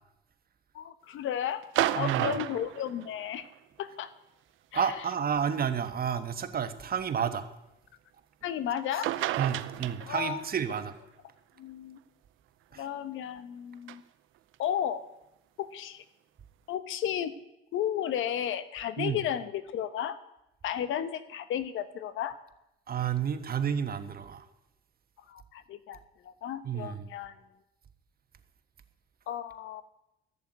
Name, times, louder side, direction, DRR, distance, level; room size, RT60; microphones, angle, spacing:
voice 1, 0.7-1.6 1.9-3.5 3.8-4.1 4.7-4.9 8.4-9.1 10.1-10.5 11.6-12.0 12.8-14.0 14.6-15.0 15.6-16.0 16.7-17.3 17.7-20.2 20.6-22.4 25.3-26.0 26.2-27.3 29.3-29.8, left 10 dB, 80° left, 13 dB, 1.0 m, -33 dB
sound 1, 1.6-3.5 4.8-5.0 5.9-6.0 8.8-8.9 9.0-10.5 13.9-14.0, right 14 dB, 85° right, 0.7 m, -31 dB
voice 2, 1.9-2.3 4.7-7.5 9.4-10.9 12.7-12.9 19.0-19.2 22.9-24.5 26.6-27.1, right 7 dB, 50° right, 10 dB, 1.3 m, -30 dB
13.5 x 7.0 x 9.2 m, 0.90 s
cardioid pair, 90°, 20 cm